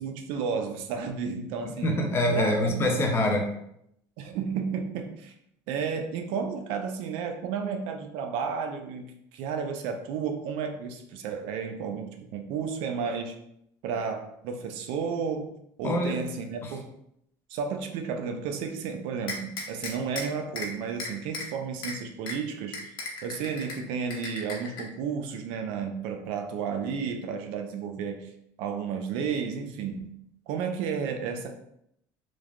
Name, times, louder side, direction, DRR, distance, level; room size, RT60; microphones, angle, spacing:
voice 1, 0.0-1.9 2.4-2.9 4.2-5.3 5.7-13.3 13.8-15.5 15.8-16.9 17.5-22.9 23.2-28.3 28.6-30.1 30.5-31.5, right 6 dB, 75° right, 5 dB, 0.4 m, -32 dB
voice 2, 1.6-3.5 15.8-16.2 16.6-16.7, left 1 dB, 25° left, 2 dB, 0.5 m, -25 dB
sound 1, 19.3-20.2 20.6-20.7 21.0-21.5 21.8-21.9 22.3-22.4 22.7-23.8 24.1-24.8, left 3 dB, 55° left, 0.7 m, -35 dB
3.1 x 2.1 x 2.4 m, 0.75 s
cardioid pair, 135°, 9 cm